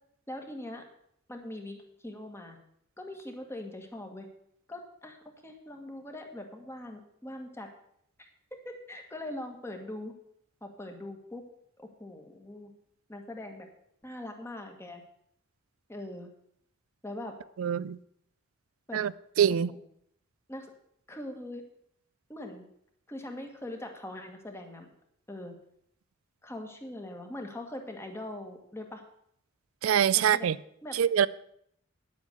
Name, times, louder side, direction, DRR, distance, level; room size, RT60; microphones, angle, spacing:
voice 1, 0.3-0.8 1.3-2.6 3.0-4.3 4.7-5.2 5.4-7.7 8.2-10.1 10.6-11.4 11.8-12.7 13.1-13.7 14.0-15.0 15.9-16.3 17.0-17.3 18.9-19.0 19.5-19.8 20.5-20.7 21.1-21.6 22.3-22.6 23.1-24.9 25.3-25.5 26.4-29.0 30.1-30.5 30.8-31.0, left 1 dB, 10° left, 1.6 m, -42 dB
voice 2, 17.6-18.0 18.9-19.1 19.4-19.7 29.8-30.6 30.9-31.3, right 9 dB, 70° right, 0.4 m, -24 dB
9.9 x 8.2 x 6.6 m
head